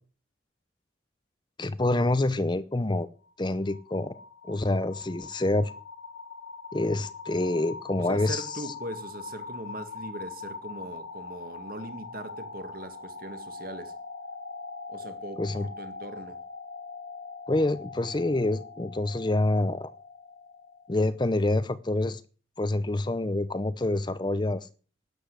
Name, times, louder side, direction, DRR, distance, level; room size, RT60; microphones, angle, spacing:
voice 1, 1.6-3.1 3.4-4.1 4.5-5.7 6.7-8.5 15.4-15.6 17.5-19.9 20.9-22.2 22.6-24.7, left 2 dB, 25° left, 0.6 m, -27 dB
sound 1, 3.3-21.1, left 4 dB, 65° left, 2.1 m, -42 dB
voice 2, 8.0-13.9 14.9-16.4, right 1 dB, 50° right, 1.8 m, -40 dB
12.0 x 8.2 x 8.3 m
head